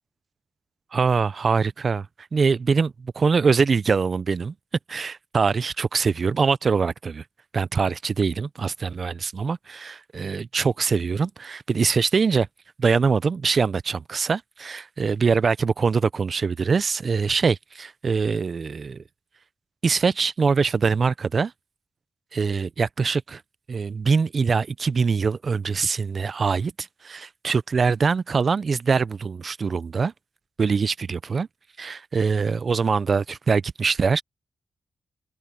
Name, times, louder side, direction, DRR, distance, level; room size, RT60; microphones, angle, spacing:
voice 1, 0.9-2.1 2.3-4.5 4.9-7.2 7.5-12.5 12.8-19.0 19.8-21.5 22.3-23.4 23.7-30.1 30.6-31.5 31.8-34.2, right 5 dB, 40° right, 0.4 m, -23 dB
open air
wide cardioid pair, 145°, 0 cm